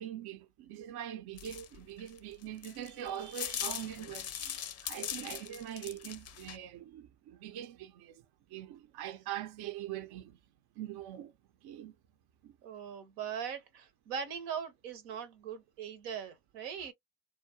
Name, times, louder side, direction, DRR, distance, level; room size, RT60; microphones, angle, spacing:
voice 1, 0.0-8.2 8.5-10.4 10.8-11.3 11.6-11.9 12.4-12.5, right 11 dB, 55° right, 0.5 m, -43 dB
sound 1, 1.4-6.6, left 9 dB, 35° left, 0.4 m, -40 dB
voice 2, 12.6-16.9, right 7 dB, 85° right, 0.8 m, -40 dB
2.3 x 2.1 x 2.7 m
hypercardioid pair, 65°, 46 cm